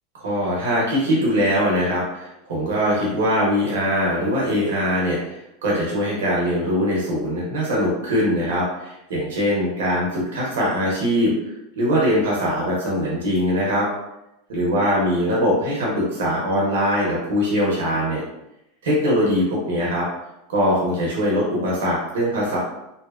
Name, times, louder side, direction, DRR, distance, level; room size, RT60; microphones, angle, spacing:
voice 1, 0.2-11.3 11.8-13.9 14.5-18.2 18.8-20.1 20.5-22.6, equal, 90° right, -5 dB, 0.8 m, -22 dB
2.7 x 2.1 x 2.3 m, 0.86 s
supercardioid pair, 130°, 0 cm